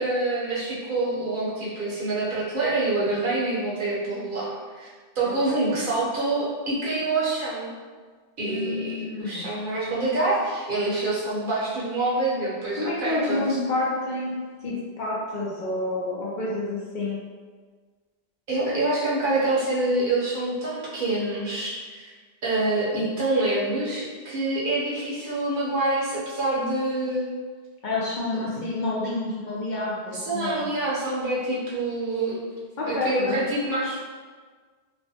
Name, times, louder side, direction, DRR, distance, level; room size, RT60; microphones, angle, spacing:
voice 1, 0.0-4.9 5.1-7.7 8.4-13.6 18.5-22.1 22.4-27.3 28.3-28.6 30.1-32.5 32.9-34.0, right 2 dB, 60° right, -7 dB, 0.9 m, -26 dB
voice 2, 5.2-5.6 8.5-9.5 12.8-14.3 14.6-17.2 27.8-30.6 32.8-33.4, left 2 dB, 55° left, -6 dB, 0.6 m, -29 dB
3.2 x 2.1 x 2.7 m, 1.5 s
omnidirectional pair, 1.0 m